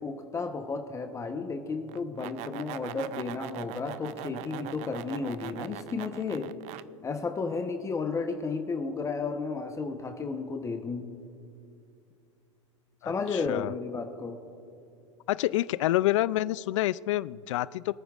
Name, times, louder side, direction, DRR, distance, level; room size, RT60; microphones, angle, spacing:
voice 1, 0.0-6.5 7.0-11.1 13.0-14.4, left 4 dB, 20° left, 5 dB, 0.9 m, -33 dB
sound 1, 1.9-6.8, right 15 dB, 45° right, 0.4 m, -41 dB
voice 2, 13.0-13.7 15.3-17.9, left 15 dB, 70° left, 19 dB, 0.4 m, -28 dB
25.5 x 9.2 x 2.5 m, 2.7 s
hypercardioid pair, 110°, 16 cm